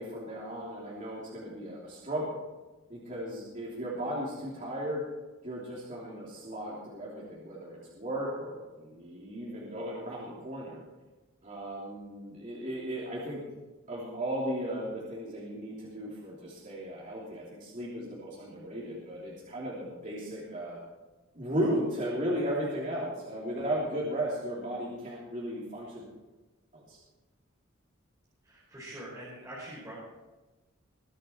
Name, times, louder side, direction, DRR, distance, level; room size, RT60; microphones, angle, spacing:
voice 1, 0.0-2.4 2.9-5.0 5.4-10.8 11.4-13.4 13.9-20.8 21.3-26.0 26.7-27.0, equal, 35° right, -6 dB, 3.1 m, -35 dB
voice 2, 28.4-30.0, right 1 dB, 15° right, -8 dB, 4.8 m, -44 dB
22.0 x 9.0 x 4.5 m, 1.1 s
head